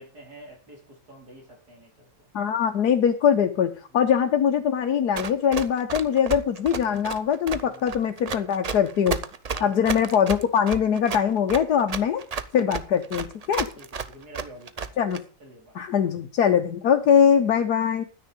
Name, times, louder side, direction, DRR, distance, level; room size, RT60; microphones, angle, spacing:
voice 1, 0.0-2.3 3.9-4.1 7.6-7.8 9.5-10.0 12.5-12.6 13.7-15.0 15.4-15.8, right 1 dB, 75° right, 0 dB, 5.2 m, -47 dB
voice 2, 2.3-9.2 9.6-12.2 12.5-13.7 15.0-15.2 15.7-18.0, left 8 dB, 75° left, 4 dB, 1.5 m, -22 dB
Run, 5.2-15.2, right 5 dB, 40° right, 0.5 m, -32 dB
11.5 x 9.8 x 5.2 m, 0.39 s
omnidirectional pair, 1.7 m